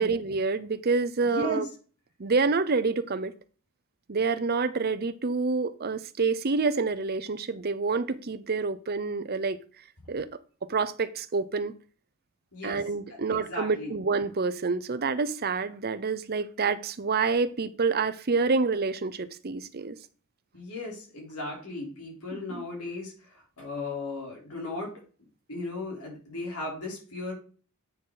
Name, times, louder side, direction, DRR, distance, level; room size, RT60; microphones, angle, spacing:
voice 1, 0.0-1.7 2.2-3.3 4.1-9.6 10.1-10.3 10.7-11.7 12.6-20.0 22.3-22.7, right 4 dB, 45° right, 13 dB, 0.7 m, -27 dB
voice 2, 1.2-1.7 12.5-12.8 13.1-13.9 20.5-24.9 25.5-27.3, left 2 dB, 90° left, -2 dB, 3.9 m, -36 dB
9.1 x 6.6 x 3.9 m, 0.40 s
head